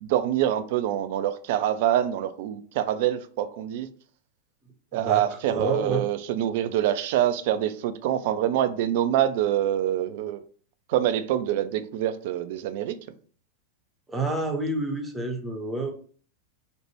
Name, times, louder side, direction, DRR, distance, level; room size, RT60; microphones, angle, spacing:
voice 1, 0.0-3.9 4.9-10.4 10.9-13.0, right 11 dB, 50° right, 0.3 m, -25 dB
voice 2, 4.9-5.2 5.5-6.0 14.1-15.9, right 2 dB, 10° right, 0.7 m, -29 dB
3.1 x 2.1 x 3.0 m
figure-of-eight pair, 90°, 0 cm